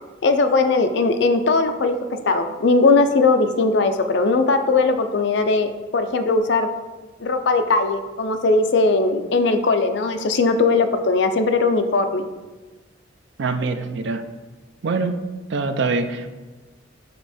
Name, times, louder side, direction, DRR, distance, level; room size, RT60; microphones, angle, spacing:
voice 1, 0.2-2.0 2.3-6.7 7.2-12.2, left 3 dB, 60° left, 8 dB, 0.5 m, -19 dB
voice 2, 13.4-14.2 14.8-15.2 15.5-16.4, right 3 dB, 65° right, 8 dB, 0.5 m, -24 dB
6.7 x 3.5 x 4.1 m, 1.2 s
head